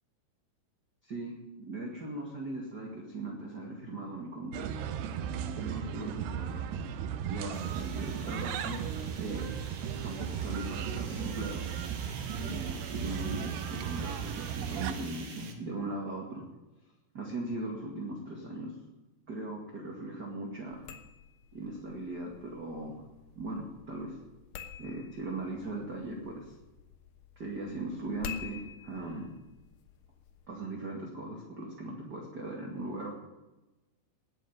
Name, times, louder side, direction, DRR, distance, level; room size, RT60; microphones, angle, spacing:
voice 1, 1.0-4.8 5.3-6.8 7.3-8.8 9.2-9.5 10.0-11.6 12.3-16.4 17.1-18.8 19.3-20.9 21.5-23.0 23.4-24.2 24.8-26.6 27.4-29.3 30.5-33.1, right 2 dB, 35° right, 0 dB, 1.9 m, -39 dB
sound 1, 4.5-14.9, right 8 dB, 80° right, 3.0 m, -36 dB
sound 2, 7.5-15.5, right 5 dB, 60° right, 3.8 m, -48 dB
sound 3, 20.7-30.5, left 8 dB, 75° left, 2.9 m, -49 dB
19.5 x 7.6 x 9.0 m, 1.1 s
omnidirectional pair, 4.9 m